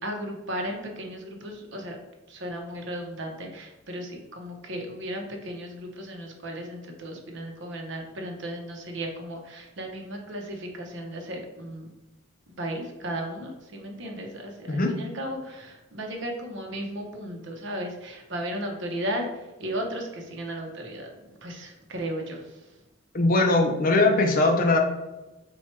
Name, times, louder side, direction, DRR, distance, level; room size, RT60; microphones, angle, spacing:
voice 1, 0.0-2.0 2.3-11.9 12.6-21.1 21.4-22.8, right 1 dB, 60° right, 2 dB, 0.7 m, -35 dB
voice 2, 23.1-24.8, left 2 dB, 40° left, 3 dB, 0.5 m, -20 dB
4.3 x 2.3 x 4.3 m, 1.0 s
head